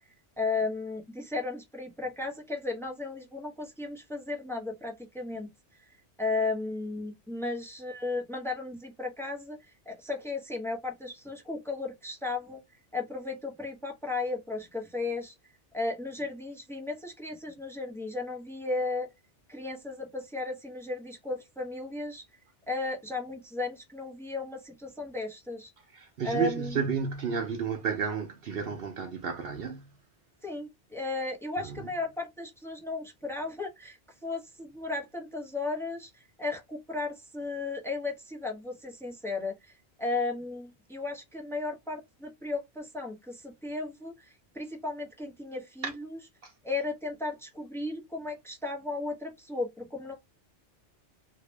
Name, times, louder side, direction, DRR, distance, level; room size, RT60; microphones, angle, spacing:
voice 1, 0.4-5.5 6.2-9.6 9.9-12.6 12.9-15.3 15.7-19.1 19.5-22.2 22.7-25.7 26.2-26.8 30.4-39.7 40.0-46.2 46.6-50.1, left 3 dB, ahead, 1.0 m, -35 dB
voice 2, 25.9-29.9 31.6-31.9 45.8-45.9 46.4-46.5, right 6 dB, 60° right, 0.8 m, -32 dB
2.9 x 2.8 x 3.2 m
omnidirectional pair, 1.2 m